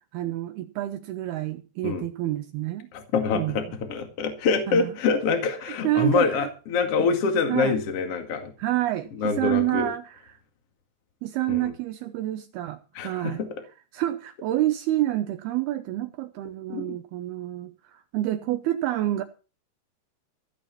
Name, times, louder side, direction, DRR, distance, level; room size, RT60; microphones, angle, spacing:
voice 1, 0.1-2.9 3.3-3.6 4.7-5.0 5.7-6.5 7.5-7.8 8.6-10.4 11.2-13.4 13.9-19.2, right 15 dB, 75° right, 2.6 m, -28 dB
voice 2, 2.9-3.6 3.9-8.5 9.2-9.9 11.5-11.7 12.9-13.3 16.7-16.9, left 5 dB, 45° left, 2.6 m, -25 dB
16.0 x 8.6 x 5.9 m
omnidirectional pair, 4.8 m